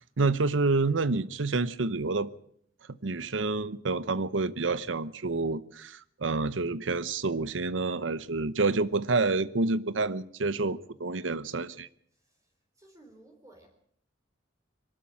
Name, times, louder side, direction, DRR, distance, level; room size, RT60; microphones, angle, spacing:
voice 1, 0.2-2.3 3.0-11.9, right 3 dB, 85° right, 16 dB, 0.9 m, -28 dB
voice 2, 12.8-13.7, right 1 dB, 15° right, 2 dB, 3.8 m, -55 dB
23.0 x 13.0 x 8.7 m, 0.66 s
head